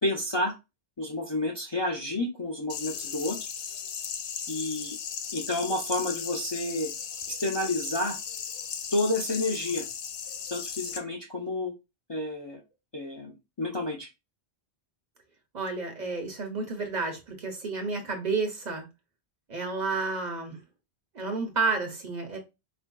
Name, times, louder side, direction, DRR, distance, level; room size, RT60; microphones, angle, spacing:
voice 1, 0.0-0.5 1.0-3.4 4.5-5.0 5.3-6.9 7.3-8.2 8.9-9.8 10.5-11.7 12.1-12.6 12.9-14.1, left 2 dB, 35° left, 0.5 m, -30 dB
sound 1, 2.7-11.0, left 7 dB, 80° left, 0.8 m, -36 dB
voice 2, 15.5-18.9 19.5-20.6 21.1-22.4, right 4 dB, 50° right, 0.8 m, -31 dB
4.3 x 2.6 x 2.2 m
omnidirectional pair, 1.1 m